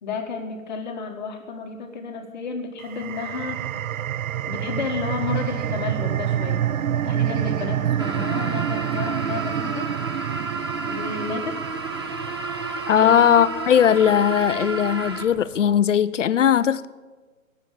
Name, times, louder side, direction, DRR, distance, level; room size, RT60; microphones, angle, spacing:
voice 1, 0.0-3.6 4.5-6.6 7.0-9.9 10.8-11.5 12.9-13.1, left 5 dB, 35° left, 3 dB, 1.7 m, -31 dB
sound 1, 2.8-14.0, right 10 dB, 80° right, 0.5 m, -28 dB
sound 2, 4.7-15.7, right 2 dB, 60° right, 4.7 m, -48 dB
sound 3, 8.0-15.3, right 3 dB, 20° right, 0.5 m, -31 dB
voice 2, 12.9-16.9, left 9 dB, 65° left, 16 dB, 0.7 m, -18 dB
18.0 x 7.2 x 8.6 m, 1.3 s
hypercardioid pair, 160°, 40 cm